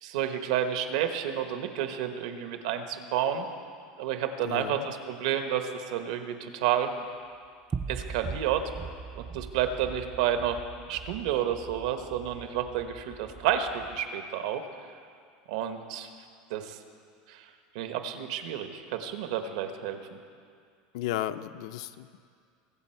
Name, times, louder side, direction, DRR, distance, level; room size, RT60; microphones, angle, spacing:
voice 1, 0.0-3.5 4.0-6.9 7.9-8.7 9.2-10.6 10.9-14.6 15.5-16.1 16.5-16.8 17.3-17.5 17.7-20.2, right 9 dB, 70° right, 7 dB, 1.0 m, -30 dB
voice 2, 4.4-4.8 20.9-22.2, left 13 dB, 65° left, 12 dB, 0.4 m, -34 dB
sound 1, 7.7-14.1, right 5 dB, 15° right, 0.3 m, -41 dB
22.5 x 7.8 x 4.5 m, 2.2 s
supercardioid pair, 180°, 3 cm